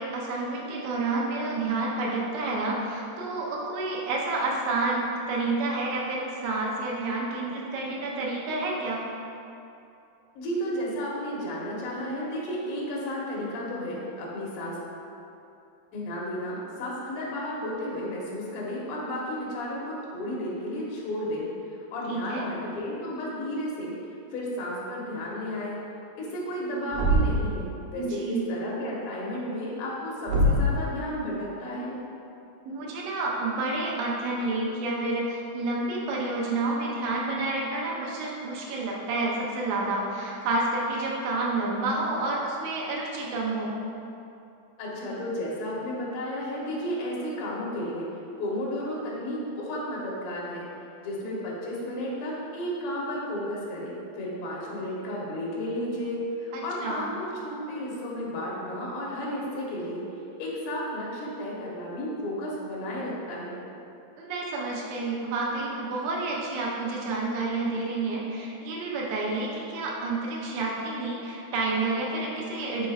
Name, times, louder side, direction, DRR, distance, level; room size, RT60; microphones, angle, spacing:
voice 1, 0.0-9.1 22.1-22.5 28.0-28.5 32.6-43.8 56.5-57.0 64.2-72.9, right 2 dB, 90° right, -3 dB, 3.1 m, -29 dB
voice 2, 10.4-14.8 15.9-21.5 21.9-23.9 24.3-25.8 26.2-32.0 44.8-48.1 48.4-50.7 51.0-60.0 60.4-63.6, equal, 90° left, -5 dB, 3.3 m, -33 dB
Thump thud, 26.9-27.6 30.3-30.8, equal, 75° right, 2.0 m, -22 dB
10.0 x 4.1 x 2.4 m, 2.7 s
omnidirectional pair, 4.8 m